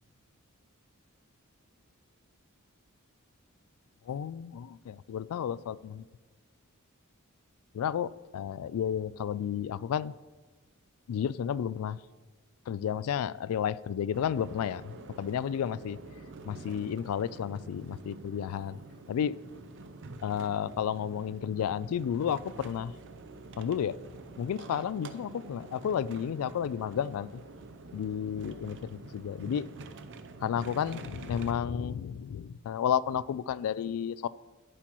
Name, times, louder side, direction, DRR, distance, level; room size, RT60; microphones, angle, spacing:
voice 1, 4.1-6.0 7.7-10.1 11.1-12.0 12.7-16.0 16.5-18.8 19.1-19.4 20.2-22.9 23.6-24.0 24.4-27.4 27.9-29.7 30.4-34.3, left 8 dB, 80° left, 17 dB, 0.3 m, -32 dB
sound 1, 14.1-31.5, right 3 dB, 60° right, 0.6 m, -47 dB
11.0 x 8.9 x 3.0 m, 1.3 s
head